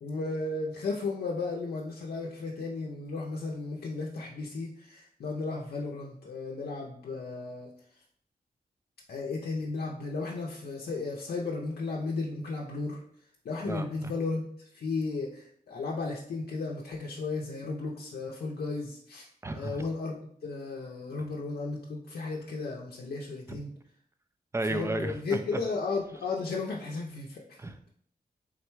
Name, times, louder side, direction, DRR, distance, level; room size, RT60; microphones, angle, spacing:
voice 1, 0.0-7.7 9.1-13.0 13.4-14.5 14.7-19.3 19.5-23.7 24.7-27.6, left 3 dB, 85° left, -2 dB, 0.5 m, -34 dB
voice 2, 13.6-14.1 19.4-19.8 23.5-23.6 24.5-25.6 27.6-27.9, right 2 dB, 15° right, 8 dB, 0.4 m, -33 dB
3.7 x 2.2 x 4.5 m, 0.62 s
wide cardioid pair, 75°, 16 cm